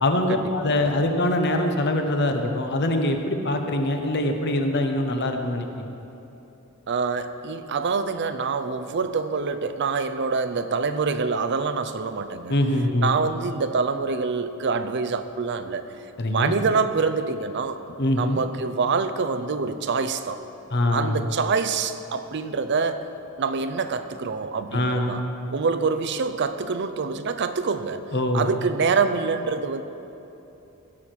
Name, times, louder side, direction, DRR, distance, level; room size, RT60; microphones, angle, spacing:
voice 1, 0.0-5.9 12.5-13.1 16.2-16.5 18.0-18.4 20.7-21.3 24.7-25.2 28.1-28.5, left 1 dB, 50° left, 5 dB, 1.0 m, -23 dB
voice 2, 6.9-12.5 13.0-15.8 16.3-17.8 18.1-20.4 20.9-23.1 23.4-25.2 25.5-28.0 28.3-29.8, right 4 dB, 55° right, 10 dB, 0.5 m, -25 dB
16.5 x 6.4 x 6.1 m, 3.0 s
head